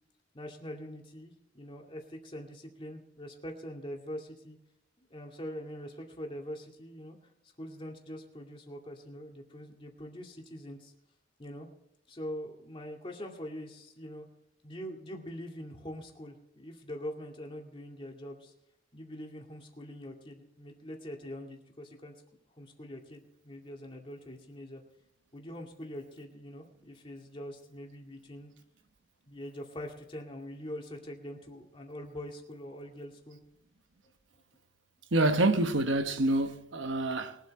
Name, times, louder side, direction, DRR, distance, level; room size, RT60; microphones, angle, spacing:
voice 1, 0.3-4.6 5.0-7.2 7.6-10.9 11.4-11.7 12.1-14.3 14.6-18.5 18.9-22.1 22.6-24.8 25.3-28.6 29.3-33.4, equal, 25° left, 2.3 m, -43 dB
voice 2, 35.1-37.4, right 2 dB, 80° right, 1.1 m, -27 dB
21.5 x 8.2 x 4.3 m
head